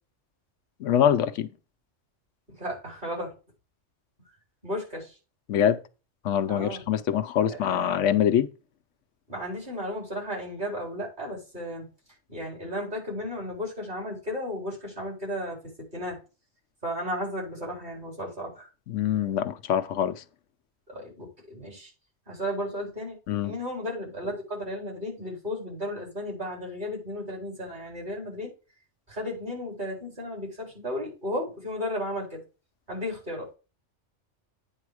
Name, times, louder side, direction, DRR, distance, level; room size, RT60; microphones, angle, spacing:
voice 1, 0.8-1.5 5.5-5.8 6.2-8.5 18.9-20.2 23.3-23.5, left 9 dB, 85° left, 1.0 m, -24 dB
voice 2, 2.5-3.3 4.6-5.2 6.5-6.8 7.5-8.2 9.3-11.8 12.3-15.6 15.9-16.2 16.8-18.7 20.9-21.9 22.3-23.2 23.4-28.5 29.1-32.4 32.9-33.5, left 1 dB, 40° right, 4.3 m, -34 dB
9.1 x 4.8 x 4.7 m
omnidirectional pair, 1.2 m